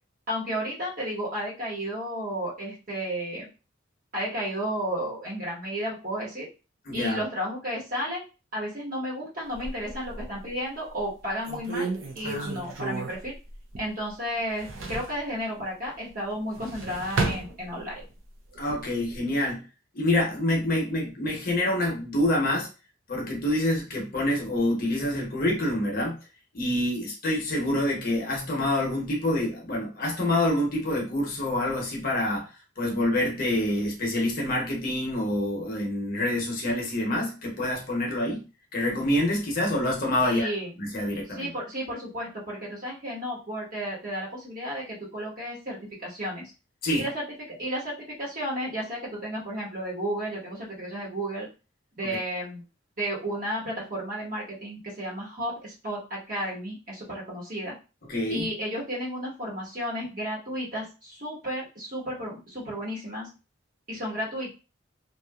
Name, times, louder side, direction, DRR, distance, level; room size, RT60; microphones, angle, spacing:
voice 1, 0.3-3.5 4.1-6.5 6.9-8.2 8.5-11.9 12.1-13.3 13.8-18.0 40.2-40.7 41.3-46.5 47.0-47.2 47.6-51.5 52.0-52.6 53.0-57.7 58.3-63.3 63.9-64.5, equal, 45° right, 1.2 m, -33 dB
voice 2, 6.9-7.2 12.2-12.5 18.6-19.6 19.9-22.7 23.1-26.2 26.5-32.5 32.8-38.4 38.7-40.5 40.8-41.5 46.8-47.0 58.1-58.5, left 1 dB, 45° left, 0.8 m, -26 dB
sound 1, 9.5-10.5 11.0-11.1 11.4-14.1 14.4-15.2 16.3-18.1 18.5-19.2, right 3 dB, 75° right, 0.6 m, -33 dB
2.7 x 2.4 x 2.3 m
head